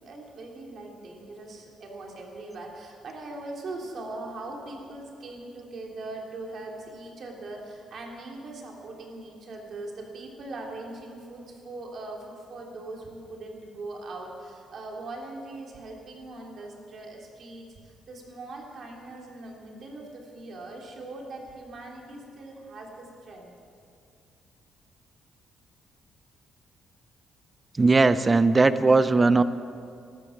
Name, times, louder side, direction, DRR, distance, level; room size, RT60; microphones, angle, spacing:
voice 1, 0.0-23.5, right 2 dB, 55° right, 0 dB, 3.1 m, -41 dB
voice 2, 27.8-29.4, right 3 dB, 25° right, 14 dB, 0.6 m, -19 dB
13.5 x 12.5 x 7.2 m, 2.3 s
cardioid pair, 90°, 0 cm